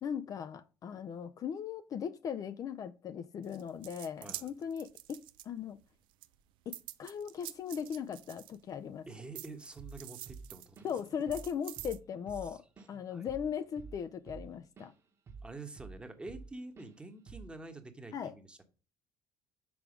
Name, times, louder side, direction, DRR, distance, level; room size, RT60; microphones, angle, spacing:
voice 1, 0.0-5.8 6.7-9.1 10.8-12.6 12.9-14.9 18.1-18.3, left 7 dB, 45° left, 0.5 m, -38 dB
sound 1, 3.4-5.8 6.2-8.9 9.3-12.0, right 15 dB, 75° right, 0.5 m, -47 dB
voice 2, 4.2-4.5 9.1-10.9 12.4-13.2 15.4-18.6, right 2 dB, 10° right, 1.1 m, -48 dB
Drum kit / Drum, 9.8-10.0 10.3-11.0 11.3-11.5 11.8-14.9 15.3-16.5 16.8-16.9 17.3-17.6, right 4 dB, 30° right, 1.3 m, -49 dB
6.1 x 4.5 x 5.0 m
cardioid pair, 110°, 9 cm